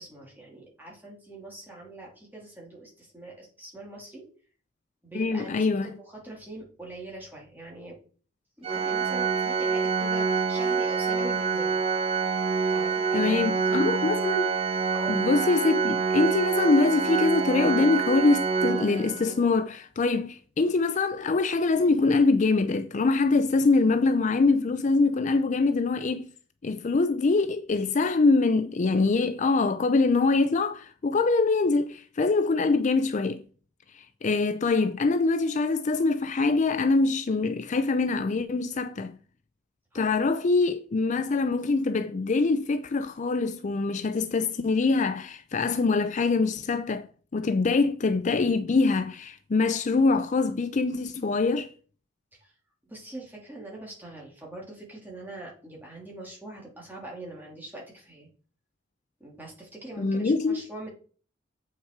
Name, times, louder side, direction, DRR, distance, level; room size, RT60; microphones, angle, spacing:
voice 1, 0.0-4.3 5.0-8.0 8.6-11.8 12.5-13.4 13.7-13.9 14.9-15.2 39.9-40.1 52.4-52.5 52.9-58.3 59.2-60.9, right 2 dB, 10° right, 2.9 m, -42 dB
voice 2, 5.1-5.9 13.1-14.5 15.1-26.3 26.6-33.4 33.9-39.2 39.9-47.1 47.3-51.7 60.0-60.6, left 3 dB, 40° left, 0.4 m, -24 dB
Organ, 8.6-19.5, right 5 dB, 30° right, 0.9 m, -26 dB
8.0 x 5.8 x 4.6 m
head